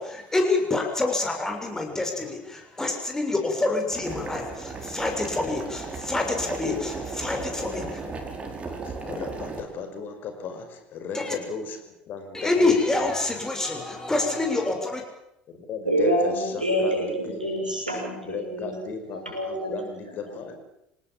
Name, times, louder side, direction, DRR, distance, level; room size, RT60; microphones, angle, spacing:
voice 1, 0.0-8.0 11.1-11.4 12.3-15.0, left 2 dB, 10° left, 3 dB, 6.9 m, -26 dB
Boiling, 3.9-9.6, right 4 dB, 25° right, 5.4 m, -36 dB
voice 2, 6.5-6.8 7.6-7.8 8.2-8.3 8.7-13.0 13.8-13.9 15.5-17.5 18.2-20.5, left 5 dB, 45° left, 7 dB, 5.4 m, -36 dB
voice 3, 15.8-20.5, right 1 dB, 85° right, 2 dB, 6.3 m, -27 dB
27.0 x 18.5 x 7.6 m, 0.81 s
figure-of-eight pair, 65°, 4 cm